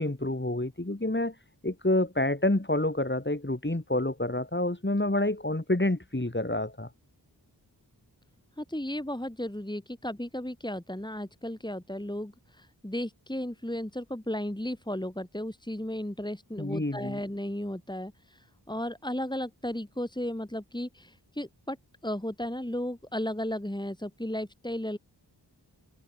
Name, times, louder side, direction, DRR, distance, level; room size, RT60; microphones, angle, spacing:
voice 1, 0.0-1.3 1.6-6.9 16.6-17.2, left 1 dB, 25° left, 6.3 m, -28 dB
voice 2, 8.6-21.8 22.0-25.0, left 1 dB, 10° left, 5.3 m, -34 dB
wide cardioid pair, 55°, 43 cm